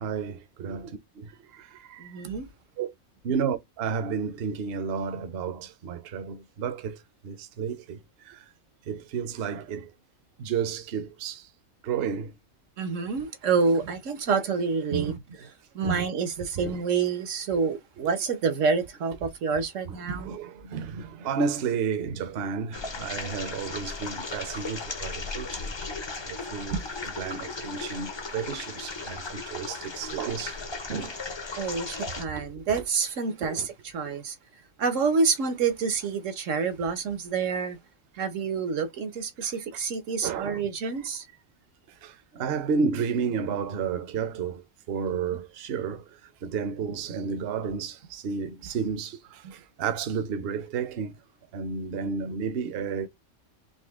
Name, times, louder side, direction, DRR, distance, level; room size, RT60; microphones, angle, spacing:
voice 1, 0.0-2.3 2.8-2.9 3.2-8.4 8.9-9.9 10.4-11.5 11.8-12.3 14.9-15.2 15.8-16.1 16.6-16.8 20.2-25.7 26.2-26.8 27.2-30.6 30.9-31.2 31.7-31.9 32.4-32.5 33.4-33.7 34.0-34.2 39.4-39.5 40.2-40.7 42.0-44.6 44.9-51.1 51.5-53.1, right 6 dB, 60° right, 0.8 m, -32 dB
voice 2, 2.0-2.5 12.8-15.1 15.7-20.3 26.7-26.8 31.6-34.4 34.8-37.8 38.2-41.3 49.4-49.5, right 5 dB, 80° right, 1.3 m, -28 dB
sound 1, 22.7-32.2, left 3 dB, 35° left, 0.4 m, -36 dB
4.1 x 2.7 x 3.5 m
omnidirectional pair, 1.3 m